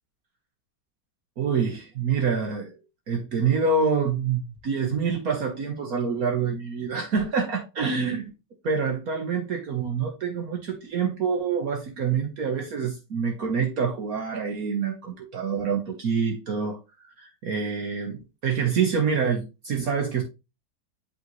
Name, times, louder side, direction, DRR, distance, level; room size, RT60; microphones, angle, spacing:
voice 1, 1.4-2.7 3.1-8.2 8.6-16.8 17.2-20.2, right 5 dB, 60° right, 1.2 m, -26 dB
8.1 x 3.9 x 3.0 m
omnidirectional pair, 2.0 m